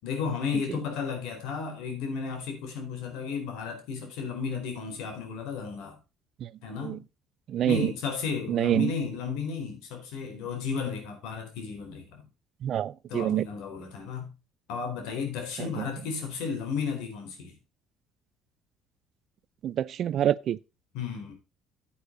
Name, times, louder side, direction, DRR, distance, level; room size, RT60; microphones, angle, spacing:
voice 1, 0.0-6.0 6.6-7.0 7.6-12.3 13.1-14.3 14.7-17.6 20.9-21.3, left 5 dB, 85° left, 4.3 m, -33 dB
voice 2, 7.5-7.9 8.5-8.9 12.6-13.5 15.8-15.9 19.6-20.6, right 11 dB, 45° right, 0.4 m, -26 dB
10.0 x 8.5 x 3.9 m
cardioid pair, 145°, 0 cm